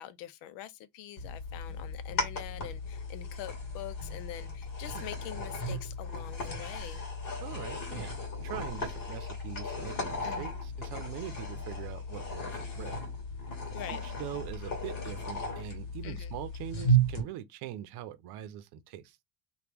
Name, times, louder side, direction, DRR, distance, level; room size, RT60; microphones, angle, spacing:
voice 1, 0.0-7.0 10.2-10.5 13.7-14.0 16.0-16.3, left 12 dB, 75° left, 0.6 m, -44 dB
sound 1, 1.2-17.2, right 1 dB, 45° left, 1.6 m, -35 dB
voice 2, 7.4-13.0 13.9-19.2, right 11 dB, 60° right, 0.7 m, -42 dB
3.0 x 2.3 x 3.4 m
cardioid pair, 130°, 44 cm